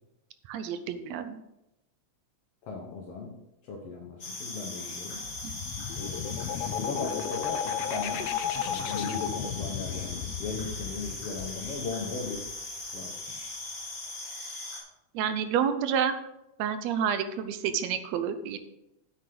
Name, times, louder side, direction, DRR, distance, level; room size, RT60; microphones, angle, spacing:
voice 1, 0.5-1.4 5.4-5.5 15.1-16.1 16.6-18.6, right 8 dB, 75° right, 10 dB, 1.8 m, -29 dB
voice 2, 2.6-3.4 3.6-5.2 6.0-8.3 8.6-12.4 12.9-13.2, left 4 dB, 60° left, -1 dB, 1.9 m, -37 dB
sound 1, 4.2-14.8, left 2 dB, 30° left, 2.2 m, -39 dB
sound 2, 5.1-12.8, left 9 dB, 75° left, 1.5 m, -34 dB
9.1 x 8.9 x 3.9 m, 0.87 s
omnidirectional pair, 3.5 m